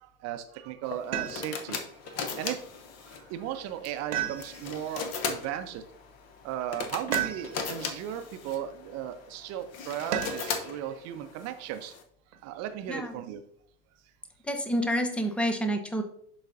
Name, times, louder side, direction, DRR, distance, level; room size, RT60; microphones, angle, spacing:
voice 1, 0.0-1.8 2.1-2.6 3.3-5.8 6.4-11.9 12.4-13.4, right 11 dB, 35° right, 9 dB, 0.7 m, -36 dB
sound 1, 0.8-12.0, left 5 dB, 35° left, 0.8 m, -38 dB
sound 2, 1.1-1.8 4.1-4.9 7.1-7.8 10.1-10.6 12.3-13.0, right 10 dB, 70° right, 1.1 m, -34 dB
voice 2, 14.5-16.0, equal, 5° left, 6 dB, 0.4 m, -28 dB
11.0 x 4.0 x 2.6 m, 0.66 s
figure-of-eight pair, 90°, 47 cm